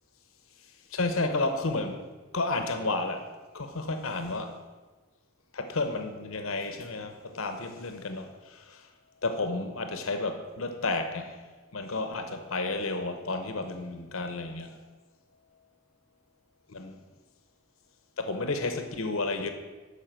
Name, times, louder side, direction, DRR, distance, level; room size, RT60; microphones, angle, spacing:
voice 1, 0.9-2.0 2.3-3.2 3.5-4.5 5.5-8.8 9.2-11.4 11.7-14.8 16.7-17.0 18.2-19.5, left 3 dB, 85° left, 7 dB, 1.0 m, -31 dB
12.0 x 5.2 x 7.6 m, 1.3 s
head